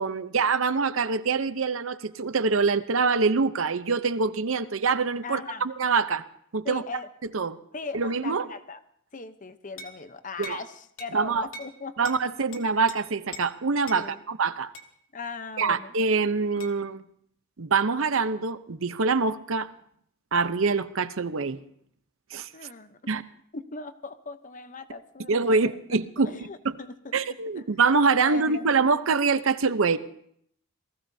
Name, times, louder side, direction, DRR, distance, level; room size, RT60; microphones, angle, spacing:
voice 1, 0.0-6.2 6.5-6.8 7.3-7.6 7.9-8.5 10.4-10.6 11.1-11.4 12.0-14.7 15.6-17.0 17.6-19.7 20.3-21.6 22.3-22.5 23.1-23.2 25.3-26.3 26.6-26.7 27.1-30.0, right 4 dB, 70° right, 12 dB, 0.7 m, -25 dB
voice 2, 5.2-5.7 6.6-7.1 7.7-8.8 9.1-12.1 13.9-14.2 15.1-15.9 22.5-23.0 23.5-27.2 27.6-27.7 28.2-28.7, left 4 dB, 40° left, 10 dB, 0.8 m, -39 dB
sound 1, 9.8-10.0 10.4-10.6 11.0-11.1 11.5-11.7 12.0-12.2 12.5-13.0 13.3-13.5 13.9-14.0 14.7-14.9 16.6-16.8, left 2 dB, 65° left, 1.7 m, -42 dB
28.0 x 18.5 x 2.7 m, 0.67 s
head